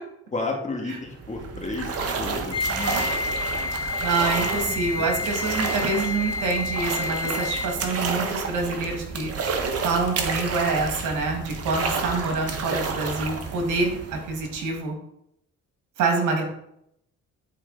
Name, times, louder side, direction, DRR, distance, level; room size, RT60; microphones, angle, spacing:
voice 1, 0.3-3.1 4.7-5.3, left 3 dB, 25° left, 0 dB, 2.1 m, -33 dB
sound 1, 1.0-14.8, right 5 dB, 50° right, 1.3 m, -30 dB
Wind instrument woodwind instrument, 2.5-7.9, left 4 dB, 55° left, 2.4 m, -30 dB
voice 2, 4.0-9.3 9.8-14.9 16.0-16.4, right 3 dB, 85° right, 2 dB, 1.9 m, -26 dB
10.5 x 4.6 x 4.0 m, 0.78 s
cardioid pair, 90°, 30 cm